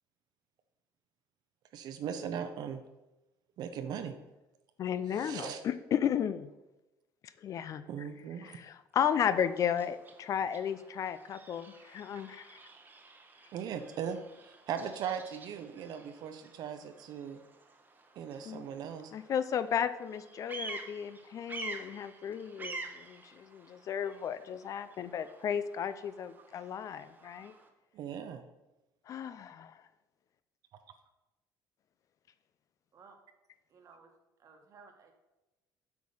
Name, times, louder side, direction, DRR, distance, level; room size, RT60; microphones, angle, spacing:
voice 1, 1.7-2.8 3.6-4.2 5.1-5.6 7.9-8.6 13.5-17.4 18.2-19.1 27.9-28.4, right 8 dB, 60° right, 8 dB, 0.6 m, -39 dB
voice 2, 4.8-6.5 7.4-8.1 8.4-12.6 18.4-18.6 19.1-27.5 29.1-29.6, left 8 dB, 45° left, 13 dB, 0.4 m, -34 dB
Bird vocalization bird call bird song, 8.9-27.7, right 3 dB, 25° right, 0.9 m, -49 dB
voice 3, 33.7-34.1 34.4-35.1, right 5 dB, 45° right, 4 dB, 1.3 m, -57 dB
8.1 x 4.9 x 5.4 m, 1.0 s
cardioid pair, 140°, 8 cm